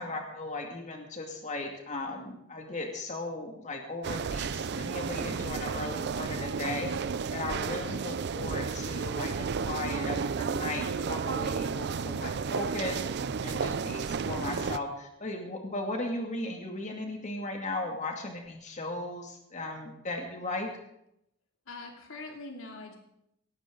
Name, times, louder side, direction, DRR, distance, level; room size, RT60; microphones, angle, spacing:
voice 1, 0.0-13.0 13.4-20.7, left 2 dB, 35° left, 2 dB, 2.3 m, -37 dB
sound 1, 4.0-14.8, right 5 dB, 55° right, 0.5 m, -32 dB
voice 2, 21.7-23.0, left 2 dB, 90° left, 2 dB, 2.7 m, -43 dB
18.0 x 16.0 x 3.9 m, 0.80 s
head